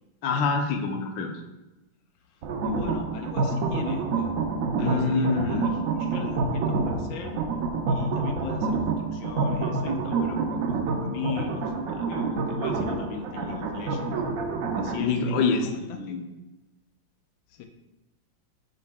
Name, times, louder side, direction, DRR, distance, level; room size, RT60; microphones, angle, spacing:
voice 1, 0.2-1.3 4.8-5.7 15.0-15.6 16.0-16.2, left 4 dB, 70° left, 4 dB, 1.4 m, -25 dB
voice 2, 2.3-4.3 4.8-7.4 7.9-14.2 14.7-16.2 17.5-17.7, left 7 dB, 90° left, 5 dB, 1.4 m, -38 dB
sound 1, 2.4-15.0, right 3 dB, 70° right, 0.8 m, -28 dB
8.0 x 5.3 x 2.2 m, 1.0 s
omnidirectional pair, 2.2 m